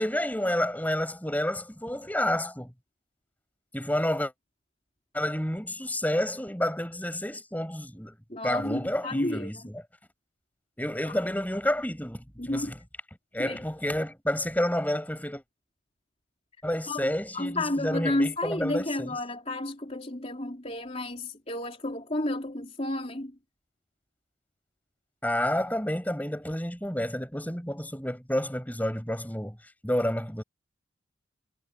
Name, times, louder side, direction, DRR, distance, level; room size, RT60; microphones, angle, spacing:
voice 1, 0.0-2.7 3.7-4.3 5.1-8.1 8.4-9.8 10.8-12.8 13.3-15.4 16.6-19.2 25.2-29.6 29.8-30.4, left 1 dB, 10° left, 6.5 m, -29 dB
voice 2, 8.3-9.5 12.4-12.7 13.4-13.6 16.9-17.1 17.3-23.3, left 1 dB, 30° left, 3.9 m, -31 dB
head